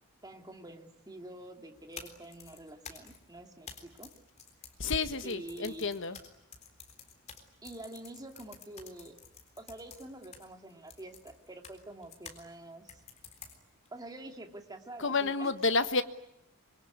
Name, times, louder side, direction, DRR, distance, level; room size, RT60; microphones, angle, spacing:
voice 1, 0.2-4.1 5.2-5.9 7.6-9.2 9.6-13.0 13.9-15.5, right 1 dB, 20° right, 4 dB, 2.5 m, -47 dB
sound 1, 1.8-12.4 12.9-13.9, left 6 dB, 35° left, 3.8 m, -51 dB
voice 2, 4.8-6.2 15.0-16.0, left 3 dB, 65° left, 10 dB, 1.5 m, -30 dB
26.0 x 24.0 x 9.6 m, 0.82 s
head